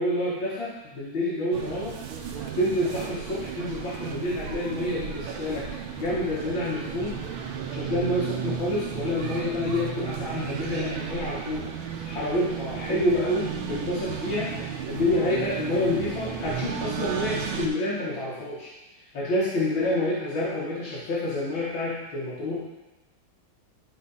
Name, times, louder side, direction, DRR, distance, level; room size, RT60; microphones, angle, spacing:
voice 1, 0.0-2.0 2.5-5.6 6.0-7.2 7.7-11.7 12.1-18.7 19.1-22.6, left 1 dB, 70° left, -8 dB, 2.3 m, -28 dB
sound 1, 1.5-17.7, right 7 dB, 80° right, 1.6 m, -34 dB
11.5 x 4.0 x 4.1 m, 1.0 s
omnidirectional pair, 2.2 m